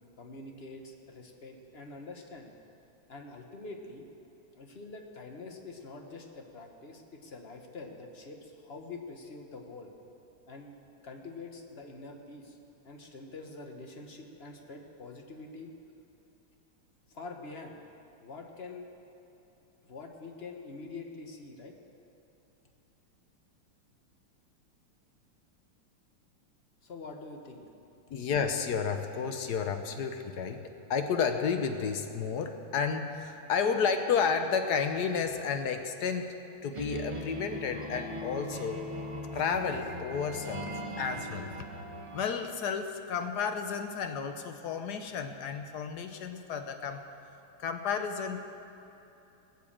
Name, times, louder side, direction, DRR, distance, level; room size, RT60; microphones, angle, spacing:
voice 1, 0.0-2.5 3.1-4.0 4.5-9.9 10.5-10.7 11.0-12.6 12.8-15.7 17.1-17.8 18.2-18.9 19.8-21.7 26.8-27.6, left 3 dB, 40° left, 2 dB, 1.0 m, -45 dB
voice 2, 28.1-36.3 36.6-38.9 39.3-41.7 42.1-47.0 47.6-48.4, left 6 dB, 60° left, 6 dB, 1.1 m, -32 dB
sound 1, 36.7-42.2, equal, 40° right, 0.4 m, -39 dB
19.5 x 7.6 x 7.4 m, 2.9 s
omnidirectional pair, 2.4 m